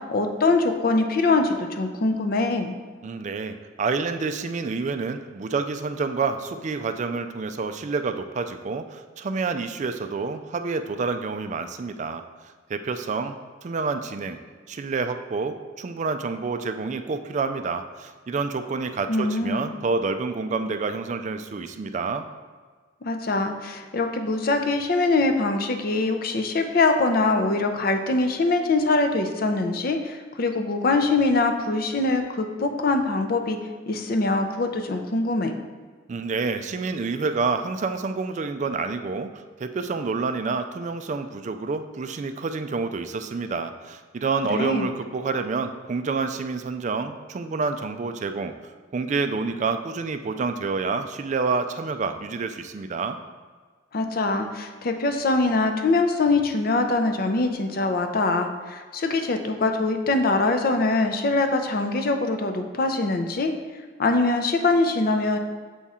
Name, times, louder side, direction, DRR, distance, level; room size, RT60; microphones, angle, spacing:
voice 1, 0.0-2.8 19.1-19.7 23.0-33.6 33.9-35.5 44.5-44.9 53.9-63.5 64.0-65.4, left 3 dB, 50° left, 6 dB, 0.6 m, -23 dB
voice 2, 3.0-12.2 12.7-14.4 14.7-22.3 36.1-48.5 48.9-53.2, right 4 dB, 40° right, 8 dB, 0.3 m, -28 dB
7.1 x 3.6 x 4.2 m, 1.5 s
head